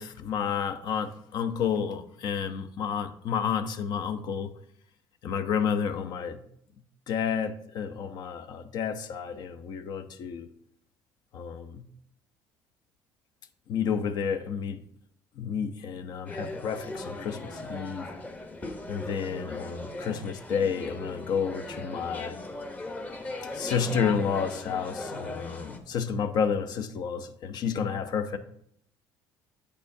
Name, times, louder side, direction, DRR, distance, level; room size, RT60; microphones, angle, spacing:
voice 1, 0.0-4.5 5.2-6.4 7.1-10.5 11.3-11.9 13.7-14.8 15.4-18.1 18.9-22.4 23.5-28.4, left 7 dB, 60° left, 0.6 m, -30 dB
sound 1, 16.3-25.8, left 2 dB, 20° left, 0.8 m, -38 dB
8.4 x 6.6 x 2.7 m
cardioid pair, 115°, 8 cm